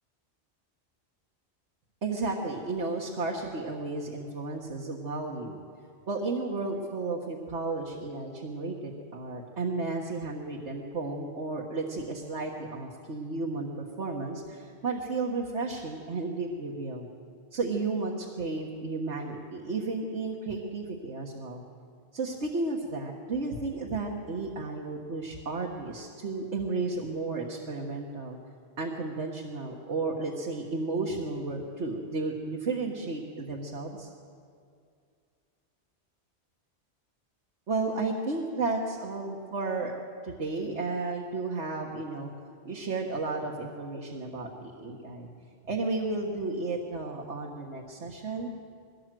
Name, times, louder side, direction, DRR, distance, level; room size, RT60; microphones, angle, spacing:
voice 1, 2.0-5.6 6.1-13.7 14.0-17.1 17.5-21.6 22.1-28.4 28.8-34.1 37.7-39.9 40.2-42.3 42.7-45.3 45.6-48.5, right 3 dB, 80° right, -1 dB, 1.8 m, -33 dB
21.5 x 17.5 x 7.7 m, 2.3 s
omnidirectional pair, 1.2 m